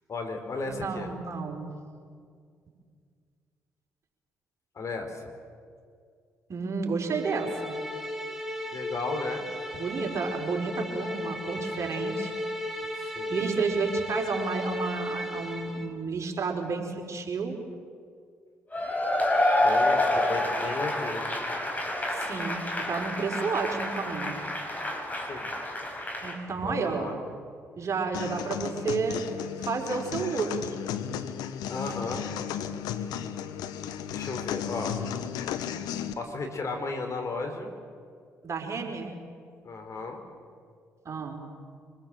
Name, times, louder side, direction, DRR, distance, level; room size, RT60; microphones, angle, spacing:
voice 1, 0.1-1.1 4.7-5.2 8.7-9.4 13.0-13.4 19.6-21.3 25.3-25.5 26.6-27.2 31.7-32.3 34.1-35.0 36.2-37.7 39.6-40.2, left 3 dB, 50° left, 4 dB, 4.3 m, -34 dB
voice 2, 0.7-1.7 6.5-7.8 9.8-12.3 12.9-17.6 22.1-24.4 26.2-27.1 27.8-29.2 29.6-30.8 38.4-39.1 41.0-41.4, right 4 dB, 45° right, 1 dB, 4.5 m, -31 dB
sound 1, 7.1-15.9, left 1 dB, 5° right, 2.9 m, -35 dB
Cheering / Applause / Crowd, 18.7-26.4, left 1 dB, 25° left, 5.6 m, -28 dB
sound 2, 28.1-36.1, left 9 dB, 75° left, 1.1 m, -34 dB
25.5 x 20.5 x 7.7 m, 2.2 s
hypercardioid pair, 50°, 7 cm